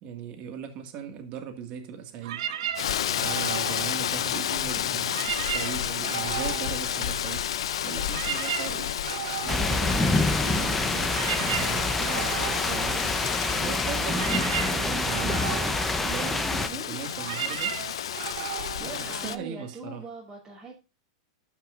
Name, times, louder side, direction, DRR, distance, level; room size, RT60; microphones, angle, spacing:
voice 1, 0.0-2.5 3.2-7.4 7.8-8.9 9.4-13.2 13.6-17.7 18.8-20.0, right 8 dB, 45° right, 1.7 m, -38 dB
sound 1, 2.2-4.6 5.0-7.5 7.8-19.8, right 10 dB, 70° right, 0.8 m, -36 dB
Rain, 2.8-19.4, left 10 dB, 80° left, 0.5 m, -31 dB
voice 2, 5.1-5.4 13.8-14.6 16.2-17.5 18.8-20.8, right 2 dB, 15° right, 2.5 m, -42 dB
sound 2, 9.5-16.7, left 2 dB, 5° left, 0.6 m, -27 dB
12.5 x 5.7 x 2.4 m
hypercardioid pair, 125°, 3 cm